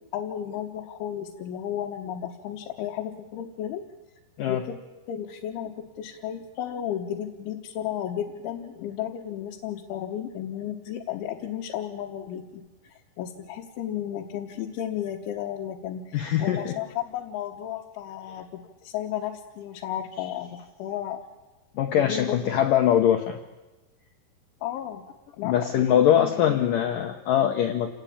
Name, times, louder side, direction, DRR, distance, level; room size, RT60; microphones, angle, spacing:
voice 1, 0.1-3.8 4.5-4.8 5.1-21.2 21.9-22.6 24.6-25.0 25.4-26.6, left 10 dB, 90° left, -1 dB, 3.7 m, -34 dB
voice 2, 16.1-16.7 21.8-23.4 25.4-27.9, left 10 dB, 75° left, 5 dB, 2.0 m, -22 dB
28.0 x 18.5 x 8.7 m, 1.1 s
omnidirectional pair, 5.3 m